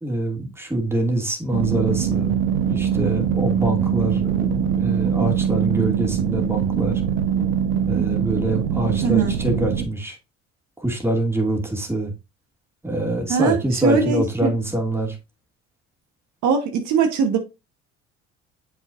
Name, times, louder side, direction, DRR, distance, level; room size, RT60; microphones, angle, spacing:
voice 1, 0.0-7.0 7.9-10.2 10.8-12.1 12.8-15.2, right 1 dB, 10° right, 2.4 m, -25 dB
sound 1, 1.5-9.9, right 8 dB, 85° right, 1.0 m, -22 dB
voice 2, 9.0-9.3 13.3-14.5 16.4-17.4, right 6 dB, 70° right, 1.3 m, -21 dB
7.4 x 5.6 x 2.5 m
supercardioid pair, 75°, 30 cm